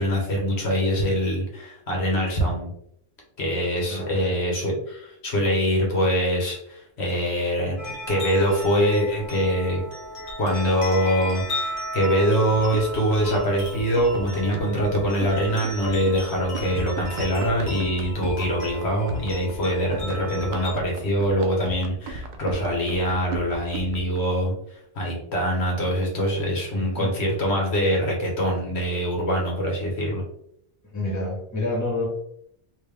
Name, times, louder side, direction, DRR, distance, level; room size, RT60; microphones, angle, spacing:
voice 1, 0.0-2.7 3.4-7.8 8.1-9.8 10.4-24.5 24.9-30.2, equal, 70° left, -2 dB, 1.4 m, -24 dB
voice 2, 3.9-4.3 26.7-27.1 30.9-32.1, left 2 dB, 15° left, -3 dB, 0.9 m, -28 dB
sound 1, 7.8-20.7, equal, 50° left, 1.4 m, -36 dB
Run, 12.5-24.2, right 2 dB, 55° right, 0.5 m, -37 dB
3.3 x 2.8 x 3.3 m, 0.72 s
omnidirectional pair, 1.1 m